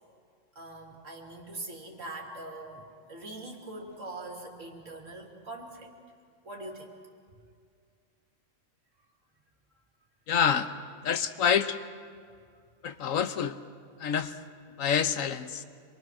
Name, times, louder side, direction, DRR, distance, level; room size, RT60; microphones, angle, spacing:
voice 1, 0.5-5.9 6.4-7.0 12.5-12.6, right 2 dB, 70° right, 1 dB, 3.1 m, -42 dB
voice 2, 10.3-10.7 11.0-11.8 12.8-13.6 14.0-14.3 14.8-15.6, left 7 dB, 80° left, 10 dB, 1.3 m, -27 dB
26.5 x 22.5 x 6.2 m, 2.2 s
omnidirectional pair, 1.4 m